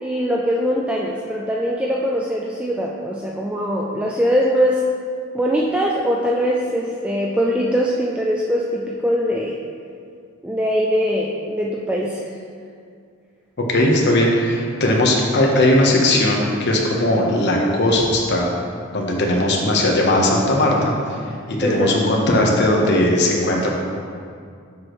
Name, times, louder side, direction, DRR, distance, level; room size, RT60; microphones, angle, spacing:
voice 1, 0.0-4.8 5.3-9.6 10.4-12.3 21.6-22.0, equal, 5° right, -3 dB, 0.3 m, -22 dB
voice 2, 13.7-18.5 18.9-23.7, left 1 dB, 55° left, -1 dB, 1.0 m, -18 dB
7.4 x 6.2 x 3.1 m, 2.3 s
head